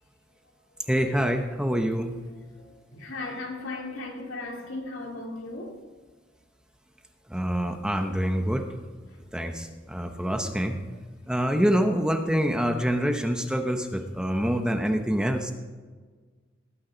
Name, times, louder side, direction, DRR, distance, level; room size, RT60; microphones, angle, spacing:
voice 1, 0.9-2.2 7.3-8.7 9.3-10.8 11.3-15.5, equal, 5° right, 0.9 m, -26 dB
voice 2, 2.5-5.8 9.1-9.2, left 2 dB, 80° left, 3.0 m, -37 dB
19.0 x 9.5 x 5.2 m
head